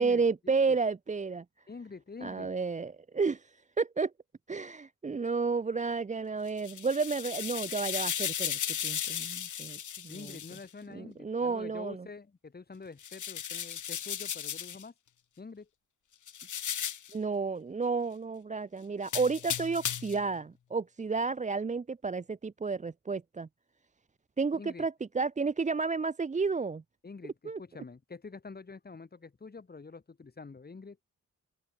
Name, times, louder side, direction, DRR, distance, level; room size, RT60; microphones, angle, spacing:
voice 1, 0.0-1.4 2.2-4.1 4.5-10.4 10.9-12.1 17.1-23.5 24.4-26.8 27.4-27.6, right 4 dB, 20° right, 0.6 m, -31 dB
voice 2, 1.7-2.5 10.1-14.9 15.4-15.7 24.5-24.9 27.0-31.0, left 4 dB, 25° left, 3.0 m, -46 dB
sound 1, 6.5-10.6 13.0-14.8 16.3-17.1 19.0-20.2, left 9 dB, 55° left, 1.4 m, -35 dB
open air
wide cardioid pair, 155°, 36 cm